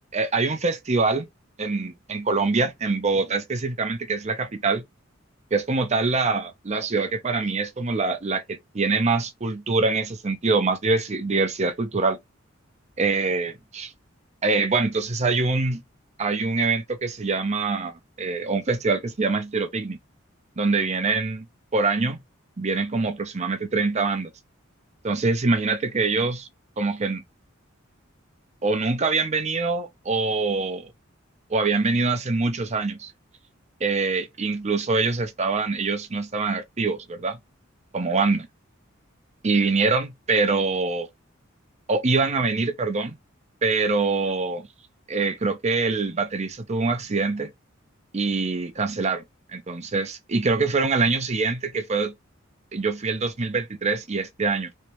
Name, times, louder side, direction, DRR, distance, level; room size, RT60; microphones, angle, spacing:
voice 1, 0.1-1.3 1.6-4.8 5.5-12.2 13.0-13.9 14.4-15.8 16.2-20.0 20.6-21.5 21.7-22.2 22.6-24.3 25.0-26.5 26.8-27.2 28.6-30.9 31.5-33.1 33.8-37.4 37.9-38.5 39.4-41.1 41.9-43.1 43.6-44.7 45.1-47.5 48.1-49.2 49.5-52.1 52.7-54.7, right 3 dB, 35° right, 0.7 m, -24 dB
3.2 x 2.9 x 3.0 m
head